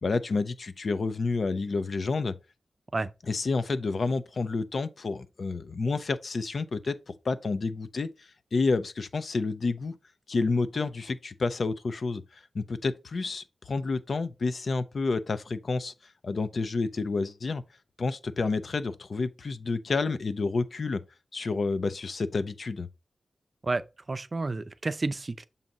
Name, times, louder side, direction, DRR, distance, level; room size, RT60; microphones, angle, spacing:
voice 1, 0.0-2.3 3.3-7.0 7.2-10.0 10.3-15.9 16.2-17.6 18.0-21.0 21.3-22.9, left 3 dB, 60° left, 0.5 m, -29 dB
voice 2, 24.1-25.4, right 3 dB, 35° right, 0.4 m, -30 dB
7.2 x 2.7 x 5.2 m
wide cardioid pair, 100°, 0 cm